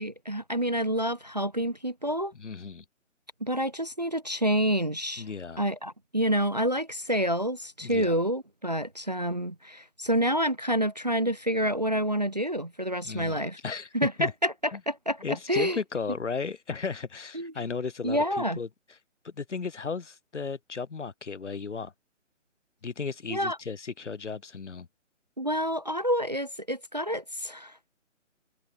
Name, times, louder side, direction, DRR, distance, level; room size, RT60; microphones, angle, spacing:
voice 1, 0.0-2.3 3.4-5.3 5.6-13.6 13.9-15.8 17.3-17.5 18.0-18.6 23.3-23.6 25.4-27.8, equal, 35° right, 0.4 m, -28 dB
voice 2, 2.4-2.8 5.2-5.6 7.8-8.2 13.0-13.9 14.2-14.3 14.7-14.8 15.2-18.7 19.2-21.9 22.8-24.9, left 5 dB, 65° left, 1.1 m, -35 dB
figure-of-eight pair, 145°, 38 cm